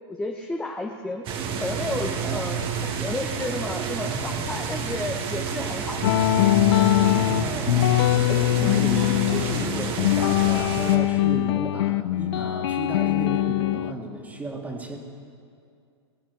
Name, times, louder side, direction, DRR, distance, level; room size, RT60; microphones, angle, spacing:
voice 1, 0.1-1.3 1.6-6.1, left 2 dB, 5° left, 3 dB, 0.7 m, -32 dB
sound 1, 1.2-11.0, right 6 dB, 35° right, 1.5 m, -30 dB
sound 2, 6.0-13.9, left 15 dB, 65° left, 0.5 m, -22 dB
voice 2, 7.1-15.0, right 2 dB, 10° right, 0 dB, 2.0 m, -34 dB
20.5 x 10.0 x 4.7 m, 2.3 s
hypercardioid pair, 115°, 14 cm